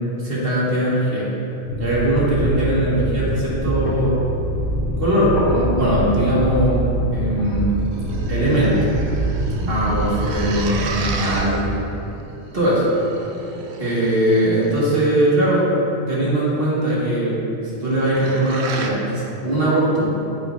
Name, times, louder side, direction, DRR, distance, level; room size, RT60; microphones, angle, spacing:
voice 1, 0.2-1.3 1.8-4.3 5.0-7.7 8.3-8.7 9.6-11.6 12.5-12.9 13.8-15.7 16.1-17.4 17.6-20.1, right 1 dB, 55° right, -7 dB, 2.0 m, -20 dB
sound 1, 1.7-11.4, right 1 dB, 75° left, 1.4 m, -25 dB
sound 2, 2.3-9.8, equal, 55° left, 1.4 m, -35 dB
sound 3, 7.7-15.3 17.7-18.9, right 4 dB, 75° right, 0.9 m, -33 dB
8.9 x 7.6 x 2.6 m, 2.9 s
omnidirectional pair, 1.1 m